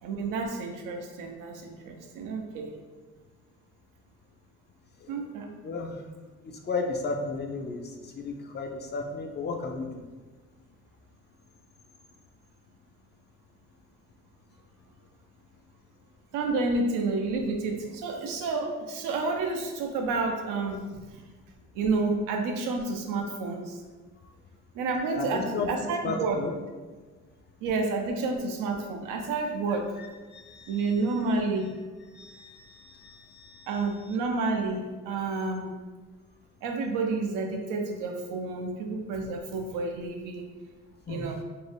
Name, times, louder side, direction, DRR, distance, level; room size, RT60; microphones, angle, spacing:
voice 1, 0.0-2.7 5.1-5.5 16.3-20.9 21.1-21.2 21.7-23.8 24.7-26.5 27.6-30.0 30.7-31.8 33.7-35.7 36.6-40.5 41.1-41.4, right 3 dB, 85° right, 3 dB, 0.5 m, -30 dB
voice 2, 5.6-6.0 6.4-10.0 25.2-25.7 26.0-26.5 30.0-30.1 30.3-31.2 32.0-33.7 41.1-41.3, left 4 dB, 35° left, 3 dB, 0.4 m, -34 dB
2.6 x 2.0 x 3.2 m, 1.3 s
supercardioid pair, 70°, 31 cm